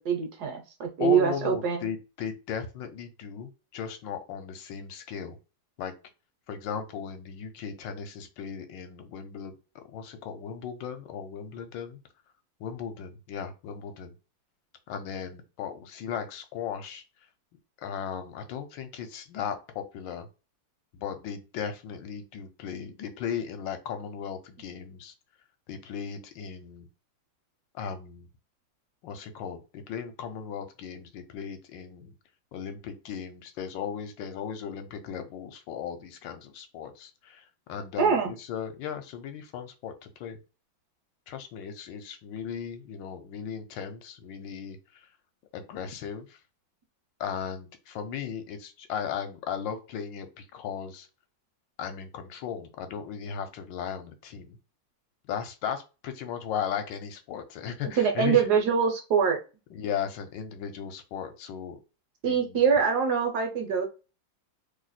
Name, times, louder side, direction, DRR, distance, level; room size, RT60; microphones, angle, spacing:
voice 1, 0.0-1.9 38.0-38.3 58.0-59.4 62.2-63.9, right 6 dB, 70° right, 4 dB, 1.1 m, -24 dB
voice 2, 1.0-5.4 5.8-5.9 6.5-12.0 12.6-14.1 14.9-17.0 17.8-20.3 20.9-25.1 25.7-26.9 27.7-28.3 29.0-32.1 32.5-40.4 41.3-45.1 45.5-46.4 47.2-51.1 51.8-54.6 55.3-58.5 59.7-61.8 62.2-62.6, left 7 dB, 80° left, 7 dB, 1.3 m, -36 dB
3.1 x 2.1 x 4.0 m, 0.31 s
omnidirectional pair, 2.1 m